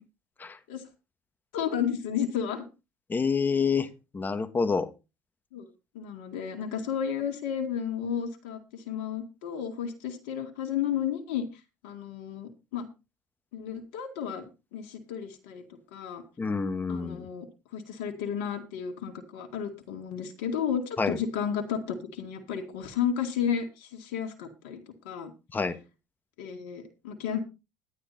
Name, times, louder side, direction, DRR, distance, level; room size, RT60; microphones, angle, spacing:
voice 1, 1.5-2.7 5.5-5.7 5.9-11.4 11.8-12.9 13.5-14.4 14.7-15.6 15.9-16.2 16.9-17.5 17.7-24.8 25.0-25.3 26.4-27.4, left 8 dB, 80° left, 5 dB, 2.0 m, -32 dB
voice 2, 3.1-3.9 4.1-4.9 16.4-17.3 21.0-21.2 25.5-25.8, left 5 dB, 25° left, 11 dB, 1.6 m, -27 dB
11.5 x 9.9 x 4.2 m, 0.28 s
hypercardioid pair, 75°, 7 cm